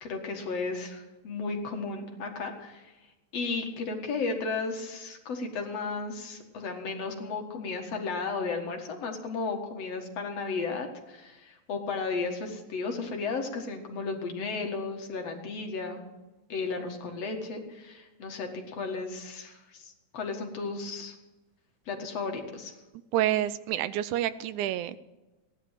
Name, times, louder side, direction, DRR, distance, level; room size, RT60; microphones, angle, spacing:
voice 1, 0.0-2.9 3.3-16.0 16.5-21.2 21.9-22.7, left 4 dB, 60° left, 3 dB, 2.7 m, -34 dB
voice 2, 23.1-25.0, right 13 dB, 85° right, 15 dB, 2.1 m, -28 dB
17.0 x 11.0 x 7.5 m, 1.1 s
omnidirectional pair, 3.4 m